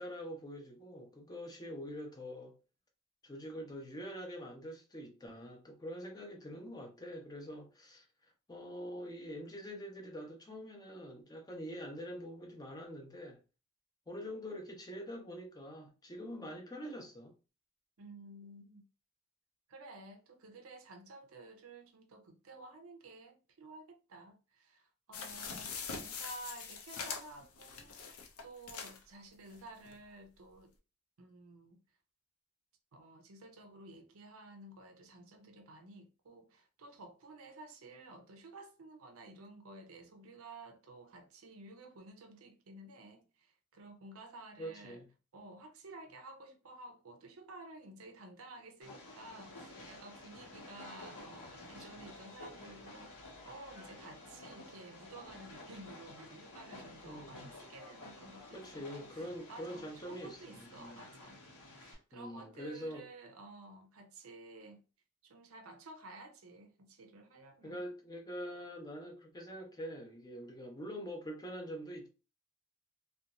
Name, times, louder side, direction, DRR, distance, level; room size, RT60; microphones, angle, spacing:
voice 1, 0.0-2.5 3.2-8.0 8.5-13.4 14.1-17.3 44.6-45.1 57.0-57.4 58.5-61.0 62.1-63.1 67.6-72.1, equal, 15° left, 0.5 m, -45 dB
voice 2, 18.0-18.9 19.7-30.7 31.2-31.8 32.9-45.0 45.3-59.2 59.5-61.4 61.7-64.8 65.2-67.8, right 2 dB, 65° right, 0.5 m, -53 dB
sound 1, 25.1-29.0 29.5-29.6 29.8-29.9, left 5 dB, 70° left, 0.5 m, -43 dB
Train, 48.8-61.9, left 2 dB, 90° left, 0.9 m, -52 dB
2.5 x 2.2 x 2.8 m
head